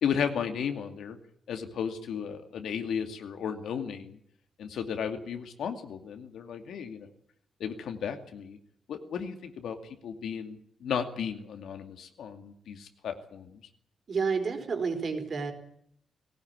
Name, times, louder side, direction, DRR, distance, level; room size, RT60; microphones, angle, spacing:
voice 1, 0.0-1.2 1.5-4.2 4.6-7.1 7.6-8.6 8.9-9.8 10.0-13.6, left 7 dB, 85° left, 6 dB, 2.5 m, -34 dB
voice 2, 14.1-15.5, right 5 dB, 40° right, 6 dB, 4.6 m, -30 dB
20.5 x 18.0 x 9.7 m, 0.67 s
wide cardioid pair, 180°, 0 cm